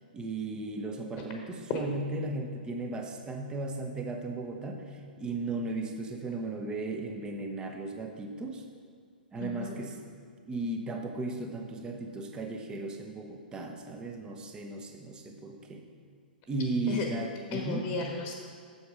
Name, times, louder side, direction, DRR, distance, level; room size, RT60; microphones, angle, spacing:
voice 1, 0.1-8.6 9.3-10.0 10.5-15.9 16.5-17.9, right 2 dB, 15° right, 3 dB, 1.0 m, -36 dB
voice 2, 9.4-9.8 16.9-17.1 17.5-18.3, left 4 dB, 30° left, 2 dB, 1.2 m, -34 dB
8.3 x 7.1 x 4.9 m, 2.1 s
figure-of-eight pair, 115°, 5 cm